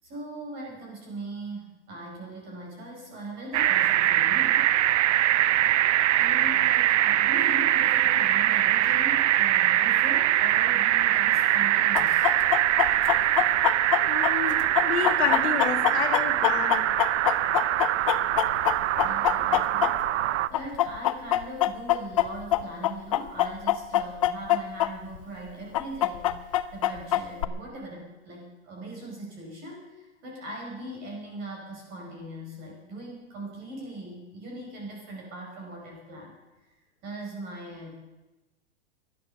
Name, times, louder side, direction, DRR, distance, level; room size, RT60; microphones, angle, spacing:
voice 1, 0.0-4.7 6.1-12.3 19.0-20.0 20.5-36.3 37.0-37.9, right 1 dB, 30° right, -1 dB, 5.2 m, -40 dB
sound 1, 3.5-20.5, right 13 dB, 80° right, 0.7 m, -23 dB
Chicken rooster, 11.9-20.2 20.5-24.9 25.1-25.2 25.7-27.4, left 13 dB, 30° left, 0.4 m, -24 dB
voice 2, 14.0-16.9, left 8 dB, 65° left, 6 dB, 2.5 m, -30 dB
15.5 x 11.5 x 6.7 m, 1.1 s
supercardioid pair, 175°, 35 cm